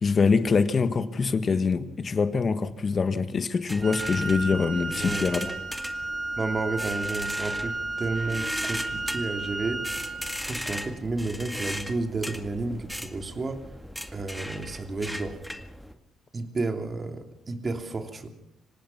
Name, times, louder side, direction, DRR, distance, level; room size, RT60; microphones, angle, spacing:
voice 1, 0.0-5.5, left 5 dB, 40° left, 11 dB, 1.7 m, -24 dB
sound 1, 3.7-15.9, equal, ahead, 2.0 m, -38 dB
Wind instrument woodwind instrument, 3.8-10.5, right 2 dB, 50° right, 7.1 m, -33 dB
voice 2, 4.9-5.7 6.4-10.0 10.3-13.6 14.1-15.4 16.3-18.3, right 3 dB, 35° right, 6 dB, 3.1 m, -32 dB
25.5 x 18.5 x 5.9 m, 0.75 s
cardioid pair, 90°, 0 cm